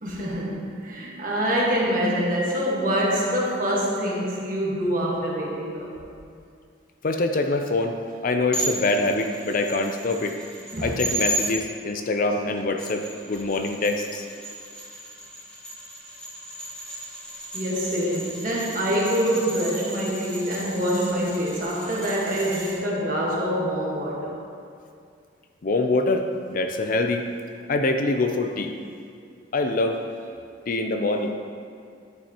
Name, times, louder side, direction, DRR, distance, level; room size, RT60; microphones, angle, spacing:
voice 1, 0.0-6.0 10.7-11.0 17.5-24.4, equal, 45° right, -4 dB, 1.4 m, -25 dB
voice 2, 7.0-8.0 8.2-10.4 10.8-14.2 25.6-26.3 26.5-27.2 27.7-28.7 29.5-30.0 30.7-31.3, left 2 dB, 45° left, 5 dB, 0.4 m, -24 dB
sound 1, 8.5-11.5 12.6-22.8, right 1 dB, 5° left, 1.8 m, -35 dB
10.0 x 7.0 x 2.9 m, 2.4 s
head